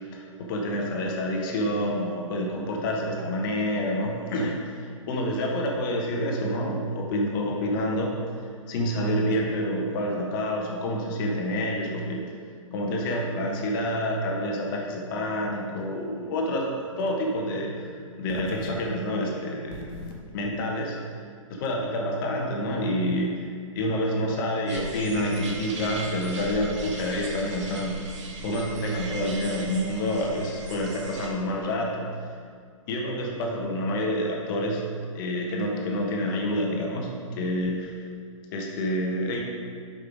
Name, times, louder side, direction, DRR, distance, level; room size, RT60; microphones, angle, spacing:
voice 1, 0.0-8.1 8.7-12.4 12.7-21.0 21.5-23.5 23.7-28.1 28.4-32.1 32.9-34.9 35.1-38.0 38.5-39.4, equal, 40° left, -1 dB, 1.2 m, -28 dB
sound 1, 24.7-31.3, right 2 dB, 60° right, 1.3 m, -38 dB
6.8 x 5.4 x 5.0 m, 2.2 s
figure-of-eight pair, 120°, 17 cm